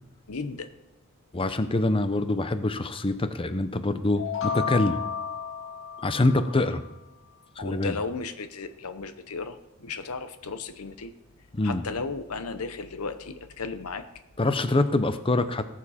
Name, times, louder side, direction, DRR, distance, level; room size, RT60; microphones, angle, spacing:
voice 1, 0.3-0.7 7.6-9.6 9.8-11.1 11.6-14.0, left 4 dB, 80° left, 10 dB, 0.8 m, -34 dB
voice 2, 1.3-5.0 6.0-6.8 7.6-8.0 11.5-11.8 14.4-15.6, left 2 dB, 25° left, 11 dB, 0.7 m, -25 dB
sound 1, 4.2-6.9, left 7 dB, 60° left, 1.7 m, -33 dB
19.0 x 7.4 x 4.3 m, 0.98 s
head